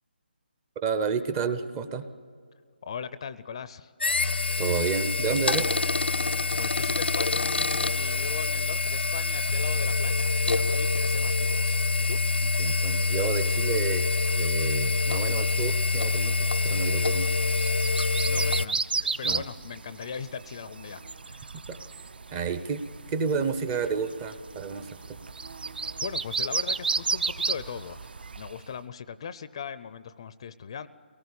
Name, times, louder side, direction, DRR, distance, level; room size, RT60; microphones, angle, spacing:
voice 1, 0.8-2.1 4.6-5.7 12.6-17.3 18.1-18.2 19.2-19.4 21.7-21.8 22.3-22.8 23.1-25.2, right 6 dB, 15° right, 11 dB, 0.6 m, -30 dB
voice 2, 2.8-3.9 6.6-12.2 18.3-21.5 26.0-30.9, left 7 dB, 30° left, 15 dB, 0.5 m, -39 dB
sound 1, 4.0-18.7, left 3 dB, 85° left, 0.7 m, -26 dB
sound 2, 16.2-28.7, right 4 dB, 65° right, 0.9 m, -34 dB
23.5 x 19.0 x 8.4 m, 2.1 s
hypercardioid pair, 170°, 6 cm